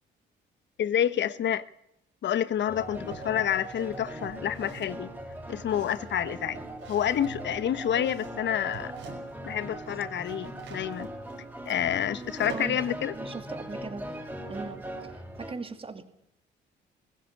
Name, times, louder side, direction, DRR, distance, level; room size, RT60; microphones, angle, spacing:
voice 1, 0.8-1.7 2.2-5.1 5.5-6.6 6.9-8.9 9.4-11.1 11.7-13.1, left 10 dB, 65° left, 1.1 m, -28 dB
sound 1, 2.6-3.3 3.7-9.5 9.7-12.9, right 6 dB, 80° right, 5.4 m, -48 dB
sound 2, 2.7-15.5, right 1 dB, 5° right, 5.3 m, -40 dB
voice 2, 13.1-14.1 14.5-16.0, right 4 dB, 30° right, 2.4 m, -39 dB
21.5 x 16.0 x 8.4 m
cardioid pair, 90°, 20 cm